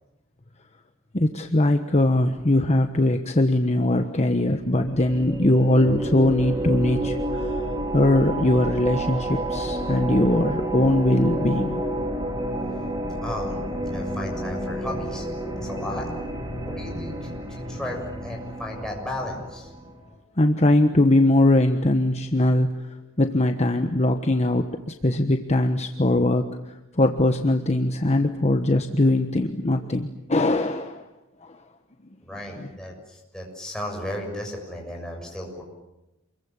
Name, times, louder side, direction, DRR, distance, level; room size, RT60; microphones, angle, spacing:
voice 1, 1.1-7.5 7.9-11.8 20.4-22.7 23.2-26.5 27.0-31.0 32.6-32.7, left 1 dB, 30° left, 6 dB, 1.3 m, -21 dB
sound 1, 4.5-19.9, right 1 dB, 20° right, 3.7 m, -30 dB
voice 2, 13.2-13.6 13.9-15.3 15.6-16.1 16.6-19.7 32.2-35.6, left 1 dB, 5° left, 0 dB, 7.0 m, -35 dB
28.0 x 22.5 x 8.9 m, 0.97 s
head